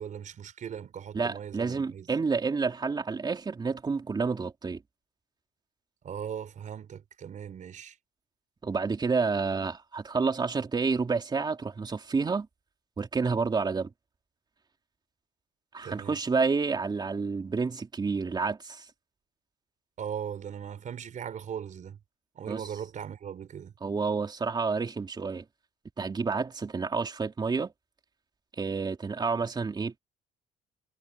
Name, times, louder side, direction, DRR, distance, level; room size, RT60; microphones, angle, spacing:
voice 1, 0.0-2.1 6.0-8.0 15.8-16.2 20.0-22.0 22.3-23.7, right 8 dB, 50° right, 4.7 m, -39 dB
voice 2, 1.1-4.8 8.6-12.5 13.0-13.9 15.7-18.8 22.5-22.6 23.8-25.4 26.0-27.7 28.6-30.0, right 4 dB, 25° right, 3.3 m, -29 dB
cardioid pair, 110°, 17 cm